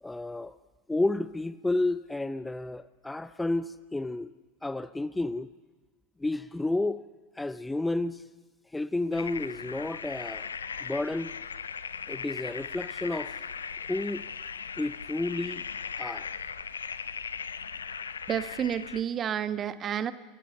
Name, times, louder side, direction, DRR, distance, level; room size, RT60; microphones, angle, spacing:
voice 1, 0.0-0.6 0.9-4.3 4.6-5.5 6.2-7.0 7.4-8.2 8.7-10.5 10.8-11.3 12.1-13.5 13.9-14.3 14.8-15.6 16.0-16.3, left 2 dB, 10° left, 0.6 m, -31 dB
sound 1, 9.1-19.0, left 6 dB, 80° left, 0.7 m, -38 dB
voice 2, 18.3-20.1, right 9 dB, 35° right, 1.2 m, -30 dB
29.0 x 13.5 x 6.9 m
figure-of-eight pair, 80°, 0 cm